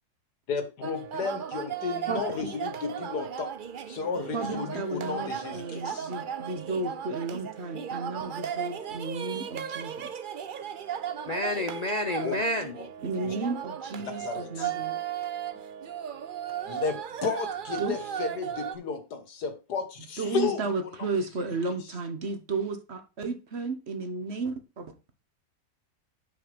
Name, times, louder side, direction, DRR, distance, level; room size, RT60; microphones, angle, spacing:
voice 1, 0.5-3.5 3.9-6.1 12.2-12.4 13.2-13.3 14.2-14.7 16.7-20.6, left 5 dB, 90° left, 8 dB, 2.0 m, -33 dB
sound 1, 0.8-18.7, right 9 dB, 60° right, 0.5 m, -36 dB
voice 2, 2.1-2.5 4.3-10.1 13.0-15.0 17.8-17.9 20.2-24.9, right 3 dB, 45° right, 8 dB, 1.3 m, -33 dB
voice 3, 11.3-12.7, left 1 dB, 70° left, 6 dB, 0.4 m, -29 dB
8.6 x 4.8 x 5.2 m, 0.30 s
omnidirectional pair, 1.7 m